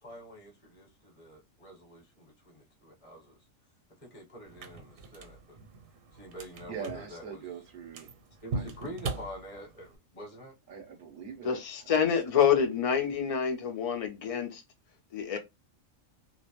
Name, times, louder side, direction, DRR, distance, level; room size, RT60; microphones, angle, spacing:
voice 1, 0.0-3.4 4.0-5.6 6.1-7.4 8.4-10.5, equal, 30° left, 0.9 m, -46 dB
sound 1, 4.5-10.0, right 3 dB, 80° right, 1.0 m, -41 dB
voice 2, 6.6-8.1 8.5-8.7 10.7-12.2, right 7 dB, 55° right, 0.6 m, -43 dB
voice 3, 11.4-14.6 15.1-15.4, left 7 dB, 60° left, 0.3 m, -27 dB
2.2 x 2.0 x 2.9 m
omnidirectional pair, 1.3 m